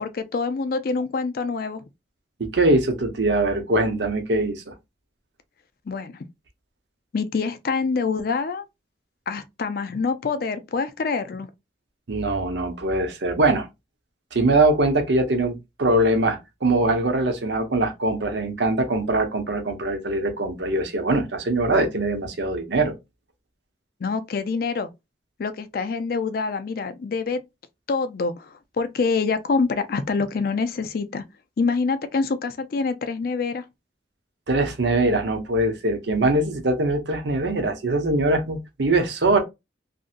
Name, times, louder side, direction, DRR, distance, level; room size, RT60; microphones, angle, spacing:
voice 1, 0.0-1.8 5.9-6.1 7.1-8.6 9.3-11.5 24.0-24.9 25.4-27.4 27.9-31.2 31.6-33.6, left 4 dB, 55° left, 0.4 m, -26 dB
voice 2, 2.4-4.7 12.1-13.7 14.3-22.9 34.5-39.4, right 2 dB, 80° right, 0.8 m, -22 dB
2.7 x 2.6 x 2.4 m
head